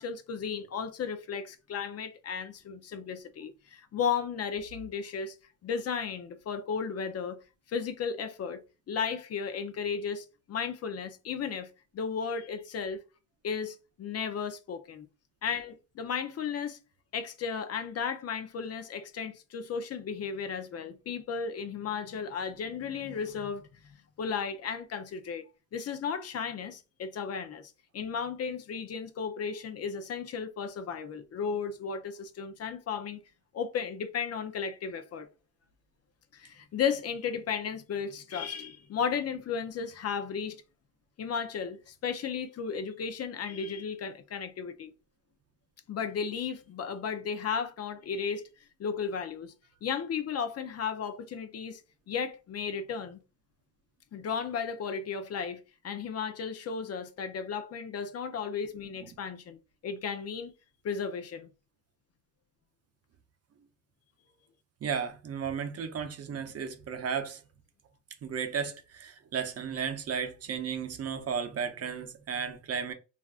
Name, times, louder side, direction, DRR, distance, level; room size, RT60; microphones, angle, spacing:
voice 1, 0.0-5.3 5.6-7.4 7.7-8.6 8.9-11.7 11.9-13.0 13.4-15.1 15.4-16.8 17.1-25.4 25.7-33.2 33.5-35.3 36.3-40.6 41.2-44.9 45.9-48.4 48.8-49.5 49.8-51.8 52.1-53.2 54.1-60.5 60.8-61.5, left 6 dB, 50° left, 0.5 m, -34 dB
voice 2, 64.8-67.4 68.2-72.9, right 7 dB, 50° right, 0.6 m, -34 dB
3.4 x 2.5 x 2.3 m
cardioid pair, 110°, 31 cm